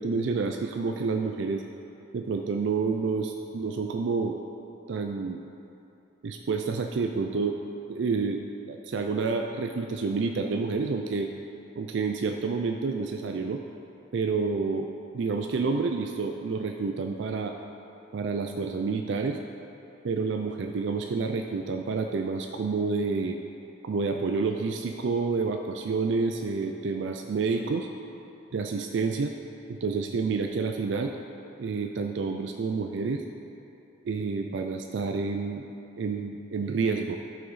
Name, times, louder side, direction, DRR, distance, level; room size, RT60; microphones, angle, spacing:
voice 1, 0.0-1.6 2.1-4.4 4.9-5.5 6.2-7.6 7.9-8.4 8.7-11.3 11.8-13.6 14.1-14.9 15.1-17.5 18.1-19.4 20.0-23.4 23.8-27.9 28.5-29.3 29.7-31.1 31.6-33.2 34.0-35.7 36.0-37.2, right 4 dB, 65° right, 4 dB, 0.4 m, -29 dB
11.5 x 5.6 x 4.1 m, 2.8 s
head